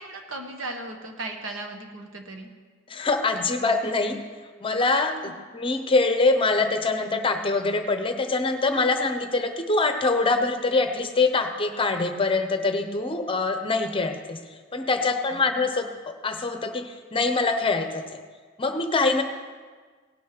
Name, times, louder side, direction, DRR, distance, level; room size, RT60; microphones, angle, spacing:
voice 1, 0.0-2.5 5.2-5.4 15.3-15.4, right 2 dB, 80° right, 3 dB, 1.5 m, -37 dB
voice 2, 2.9-4.2 4.6-14.4 14.7-18.0 18.6-19.2, left 3 dB, 25° left, 7 dB, 0.8 m, -24 dB
17.5 x 6.2 x 6.0 m, 1.5 s
head